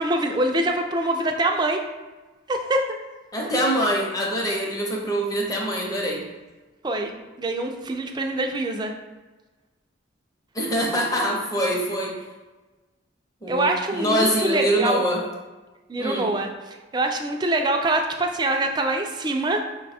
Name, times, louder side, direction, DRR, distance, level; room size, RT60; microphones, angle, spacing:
voice 1, 0.0-1.8 2.5-2.9 6.8-7.1 7.4-8.9 13.5-15.0 15.9-19.6, right 1 dB, 20° right, 4 dB, 0.4 m, -24 dB
voice 2, 3.3-6.2 10.5-12.1 13.4-15.2 16.0-16.3, equal, 20° left, -1 dB, 0.7 m, -24 dB
5.4 x 2.2 x 4.2 m, 1.2 s
head